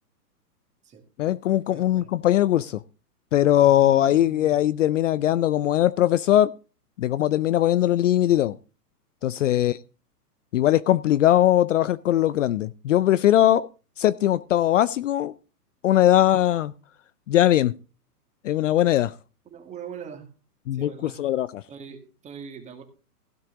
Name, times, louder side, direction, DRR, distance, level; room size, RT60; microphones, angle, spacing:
voice 1, 1.2-2.8 3.3-6.5 7.0-8.5 9.2-9.8 10.5-13.7 14.0-15.3 15.8-16.7 17.3-17.7 18.4-19.1 20.7-21.6, left 12 dB, 55° left, 18 dB, 0.5 m, -20 dB
voice 2, 1.7-2.1 3.6-4.6 9.6-9.7 19.5-20.2 20.7-21.2 21.7-22.8, right 7 dB, 15° right, 6 dB, 2.1 m, -42 dB
16.0 x 8.7 x 3.8 m, 0.34 s
hypercardioid pair, 145°, 47 cm